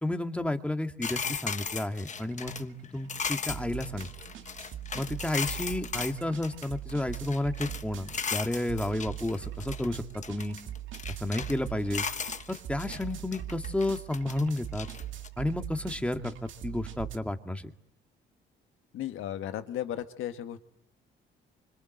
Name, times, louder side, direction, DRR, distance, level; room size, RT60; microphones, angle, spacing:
voice 1, 0.0-4.1 4.9-10.6 11.2-12.1 12.5-14.9 15.4-17.7, left 1 dB, 5° left, 6 dB, 2.0 m, -32 dB
sound 1, 1.0-6.1 6.4-7.8 8.1-9.9 10.2-11.6 11.9-13.1 13.3-15.3, left 6 dB, 35° left, 1.2 m, -36 dB
sound 2, 1.5-1.6 2.0-17.2, right 12 dB, 75° right, 2.0 m, -42 dB
voice 2, 18.9-20.6, left 11 dB, 85° left, 8 dB, 1.6 m, -35 dB
26.0 x 26.0 x 7.9 m, 0.74 s
cardioid pair, 90°, 20 cm